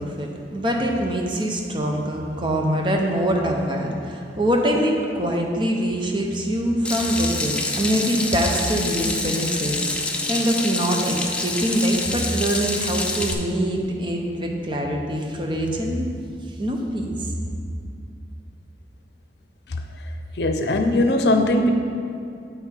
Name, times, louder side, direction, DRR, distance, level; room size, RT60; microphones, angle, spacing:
voice 1, 0.0-9.7 10.3-16.1 16.6-17.3, equal, 30° right, 1 dB, 0.8 m, -24 dB
Water tap faucet / Sink (filling or washing), 6.8-13.3, left 2 dB, 5° left, 0.4 m, -27 dB
voice 2, 20.4-21.7, left 1 dB, 75° left, 6 dB, 0.6 m, -19 dB
8.1 x 5.6 x 4.5 m, 2.4 s
head